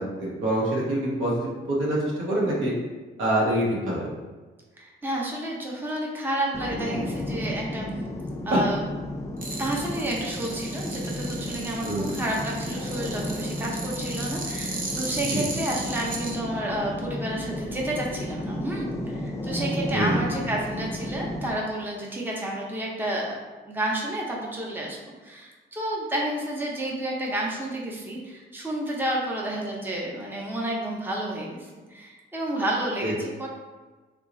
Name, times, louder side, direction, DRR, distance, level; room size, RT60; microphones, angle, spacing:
voice 1, 0.0-2.7 3.2-4.1 8.5-8.6 11.8-12.1 15.3-15.4 19.9-20.1 33.0-33.1, right 1 dB, 85° right, -5 dB, 1.1 m, -25 dB
voice 2, 4.8-7.9 8.4-8.8 9.6-23.4 23.6-25.0 25.2-33.5, right 1 dB, 10° right, -3 dB, 0.7 m, -30 dB
sound 1, 6.5-21.5, left 1 dB, 15° left, 0.4 m, -33 dB
sound 2, 9.4-16.4, right 3 dB, 45° right, 0.6 m, -36 dB
2.9 x 2.4 x 3.7 m, 1.3 s
cardioid pair, 90°, 20 cm